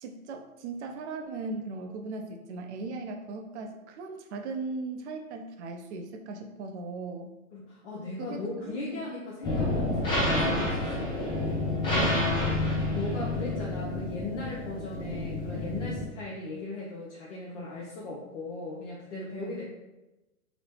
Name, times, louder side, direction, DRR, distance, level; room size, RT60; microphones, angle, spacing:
voice 1, 0.0-7.3 8.2-9.0 11.8-12.2 19.3-19.6, right 3 dB, 55° right, 4 dB, 0.5 m, -38 dB
voice 2, 7.5-11.1 12.9-19.6, left 2 dB, 55° left, -4 dB, 0.7 m, -38 dB
sound 1, 9.4-16.1, left 2 dB, 10° left, 0.5 m, -29 dB
3.0 x 2.0 x 3.1 m, 1.0 s
hypercardioid pair, 120°, 43 cm